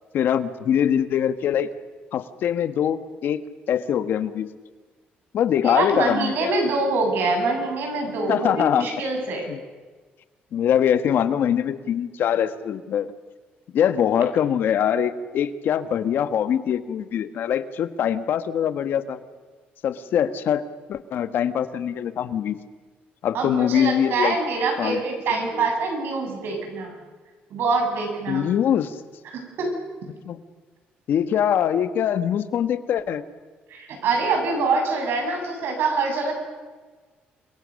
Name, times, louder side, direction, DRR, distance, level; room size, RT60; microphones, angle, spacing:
voice 1, 0.1-1.7 2.1-3.4 3.7-4.5 5.3-6.6 8.3-8.9 9.5-9.6 10.5-13.1 13.7-19.2 19.8-22.6 23.2-24.3 24.8-25.0 25.5-25.7 28.3-28.9 30.2-30.4 31.1-33.2, left 9 dB, 65° left, 11 dB, 1.5 m, -23 dB
voice 2, 5.6-9.5 23.3-27.0 27.5-28.5 29.3-29.7 33.7-36.3, right 3 dB, 70° right, 3 dB, 7.7 m, -25 dB
29.0 x 23.0 x 6.6 m, 1.4 s
cardioid pair, 110°, 4 cm